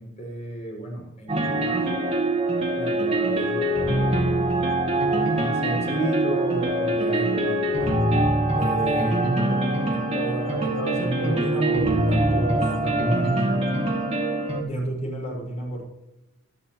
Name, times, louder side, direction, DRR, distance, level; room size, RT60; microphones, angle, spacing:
voice 1, 0.0-2.1 2.8-9.6 9.9-13.4 14.6-15.9, right 1 dB, 35° left, -1 dB, 6.2 m, -32 dB
sound 1, 1.3-14.6, right 1 dB, 30° right, 2.2 m, -23 dB
25.5 x 9.4 x 3.0 m, 0.93 s
head